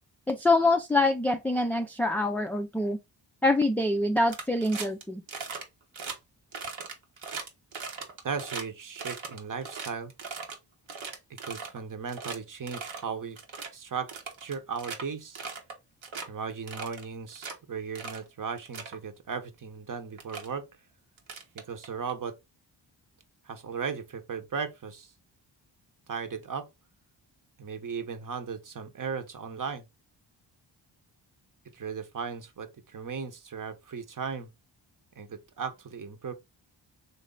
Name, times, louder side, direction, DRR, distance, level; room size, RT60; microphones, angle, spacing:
voice 1, 0.3-3.0 3.4-5.2, left 2 dB, 5° left, 0.4 m, -25 dB
sound 1, 4.3-5.0 5.3-5.6 5.9-6.2 6.5-8.6 9.0-10.6 10.9-11.8 12.1-12.4 12.7-13.0 13.4-13.7 14.1-15.0 15.4-15.7 16.0-16.3 16.7-17.5 18.0-18.2 18.6-19.0 19.8-19.9 20.2-20.5 21.2-22.1, right 5 dB, 85° right, 1.2 m, -39 dB
voice 2, 8.2-10.1 11.4-13.4 13.7-14.1 14.4-15.4 16.3-20.6 21.5-22.3 23.4-25.1 26.1-26.7 27.6-29.8 31.7-34.5 35.2-36.3, right 6 dB, 45° right, 0.9 m, -36 dB
4.1 x 3.1 x 3.7 m
cardioid pair, 75°, 45 cm